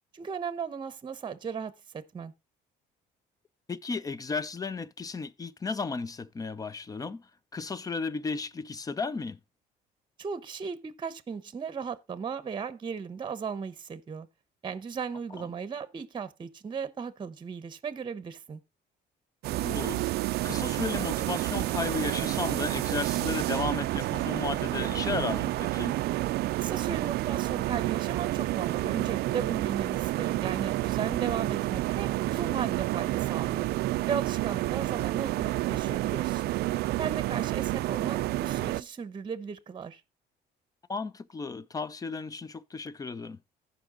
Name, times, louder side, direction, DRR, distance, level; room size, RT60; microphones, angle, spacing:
voice 1, 0.1-1.7 2.1-2.3 10.2-14.3 14.6-18.6 26.6-33.7 34.1-36.5 37.0-40.0, right 6 dB, 30° right, 0.9 m, -36 dB
voice 2, 3.7-9.4 15.4-15.5 19.6-26.0 40.9-43.4, left 4 dB, 20° left, 0.6 m, -34 dB
sound 1, 19.4-38.8, right 17 dB, 70° right, 0.4 m, -29 dB
15.0 x 5.2 x 3.8 m
cardioid pair, 110°, 17 cm